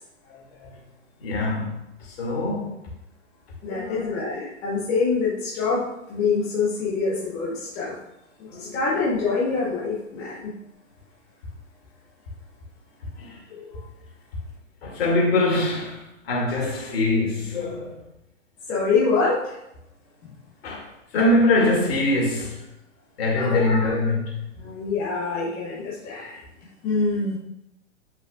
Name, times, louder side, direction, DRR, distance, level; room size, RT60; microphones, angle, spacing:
voice 1, 0.2-0.8 1.2-2.8 3.6-4.2 8.5-9.1 13.0-13.8 14.8-18.0 20.6-22.7 23.2-24.5, left 2 dB, 50° left, 2.2 m, -24 dB
voice 2, 3.6-5.8 6.1-7.9 8.4-10.5 18.7-19.5 23.4-23.8 24.6-26.4 26.8-27.4, left 4 dB, 5° left, 0.3 m, -25 dB
8.3 x 5.4 x 2.3 m
figure-of-eight pair, 110°, 38 cm